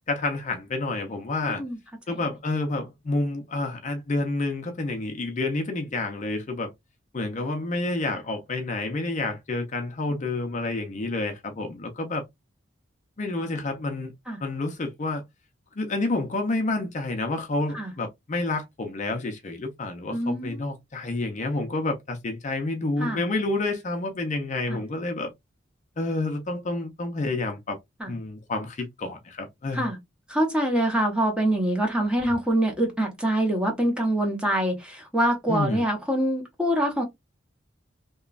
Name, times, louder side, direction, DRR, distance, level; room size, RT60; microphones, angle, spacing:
voice 1, 0.1-1.6 2.1-6.7 7.1-12.2 13.2-14.1 14.4-15.2 15.8-25.3 26.0-27.8 28.1-29.9 35.5-35.8, left 2 dB, 40° left, 0.5 m, -29 dB
voice 2, 1.4-1.8 2.1-2.2 14.3-14.4 17.7-17.9 20.1-20.7 23.0-23.2 24.7-24.8 28.0-28.1 29.7-30.0 30.3-37.0, right 1 dB, 5° right, 0.8 m, -25 dB
2.9 x 2.2 x 2.3 m
head